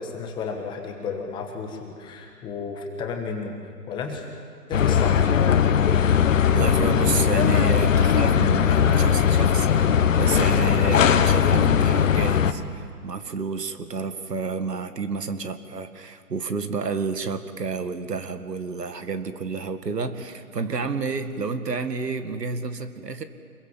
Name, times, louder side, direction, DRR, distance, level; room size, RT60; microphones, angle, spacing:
voice 1, 0.0-3.6 3.9-4.2 4.7-5.4, left 5 dB, 10° left, 3 dB, 1.4 m, -33 dB
sound 1, 4.7-12.5, left 8 dB, 50° left, 1.4 m, -19 dB
voice 2, 6.5-23.2, right 4 dB, 80° right, 9 dB, 2.1 m, -30 dB
27.0 x 22.5 x 7.5 m, 2.1 s
hypercardioid pair, 150°, 48 cm